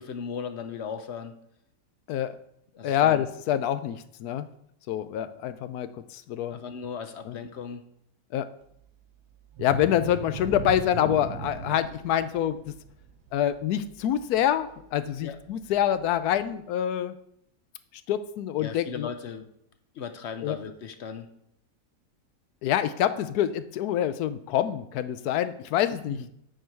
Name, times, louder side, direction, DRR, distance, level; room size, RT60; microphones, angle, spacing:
voice 1, 0.0-1.4 2.7-3.2 6.5-7.8 15.2-15.4 18.6-19.5 19.9-21.3 26.2-26.3, left 6 dB, 60° left, 9 dB, 0.8 m, -37 dB
voice 2, 2.8-4.5 4.9-6.6 7.3-7.4 8.3-8.5 9.6-12.7 13.3-17.1 18.1-19.1 20.4-20.6 22.6-26.2, left 11 dB, 80° left, 12 dB, 1.1 m, -26 dB
sound 1, 9.5-15.0 15.4-15.6 16.1-16.2, right 6 dB, 85° right, 1.4 m, -38 dB
9.0 x 4.6 x 4.5 m, 0.74 s
omnidirectional pair, 1.6 m